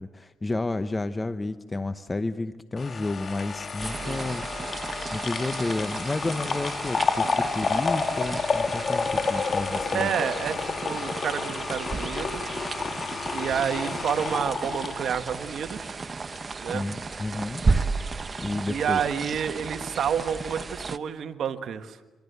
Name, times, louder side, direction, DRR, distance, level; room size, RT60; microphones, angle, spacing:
voice 1, 0.0-10.1 16.7-17.6 18.4-19.0, left 2 dB, 20° left, 10 dB, 0.9 m, -31 dB
sound 1, 2.8-16.0 16.4-16.5, left 4 dB, 40° left, 2.8 m, -30 dB
sound 2, 3.8-21.0, right 4 dB, 30° right, 1.0 m, -33 dB
voice 2, 9.9-12.6 13.3-16.0 16.6-16.8 18.7-22.0, right 8 dB, 65° right, 8 dB, 1.6 m, -29 dB
26.5 x 26.5 x 8.1 m, 1.2 s
cardioid pair, 90°, 0 cm